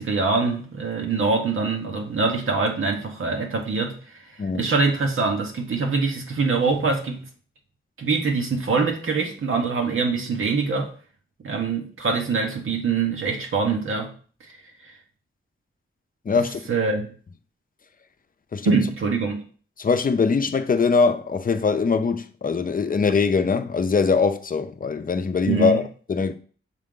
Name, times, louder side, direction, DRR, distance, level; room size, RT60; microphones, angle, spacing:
voice 1, 0.0-4.2 4.5-7.2 8.0-10.9 11.4-14.1 14.8-14.9 16.3-17.1 18.6-19.4 25.5-25.8, right 4 dB, 80° right, 1.1 m, -24 dB
voice 2, 16.3-16.6 18.5-18.8 19.8-26.3, left 5 dB, 40° left, 0.6 m, -22 dB
6.5 x 3.8 x 3.8 m
wide cardioid pair, 90°, 21 cm